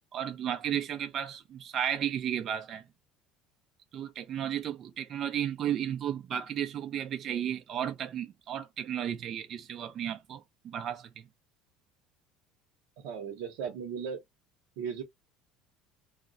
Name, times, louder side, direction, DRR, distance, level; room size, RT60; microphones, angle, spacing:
voice 1, 0.1-2.8 3.9-11.2, right 9 dB, 45° right, 0.5 m, -34 dB
voice 2, 13.0-14.2 14.8-15.0, right 7 dB, 80° right, 0.8 m, -36 dB
2.3 x 2.1 x 3.9 m
cardioid pair, 125°, 0 cm